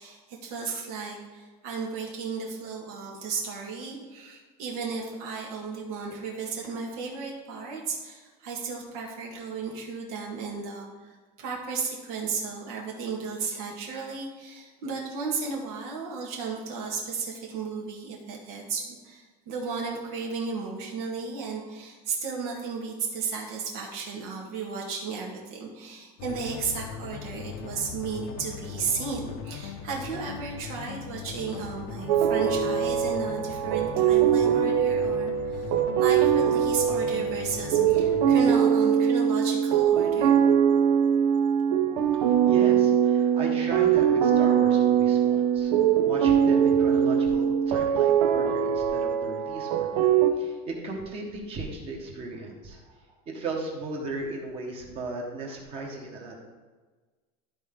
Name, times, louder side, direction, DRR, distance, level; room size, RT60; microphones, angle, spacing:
voice 1, 0.0-40.4, right 5 dB, 70° right, -1 dB, 1.8 m, -34 dB
sound 1, 26.2-38.5, left 7 dB, 60° left, 0.7 m, -40 dB
sound 2, 32.1-50.3, right 8 dB, 90° right, 0.8 m, -22 dB
voice 2, 42.1-45.7 46.0-56.5, right 2 dB, 30° right, 0 dB, 1.4 m, -36 dB
12.5 x 4.3 x 3.8 m, 1.3 s
cardioid pair, 180°, 20 cm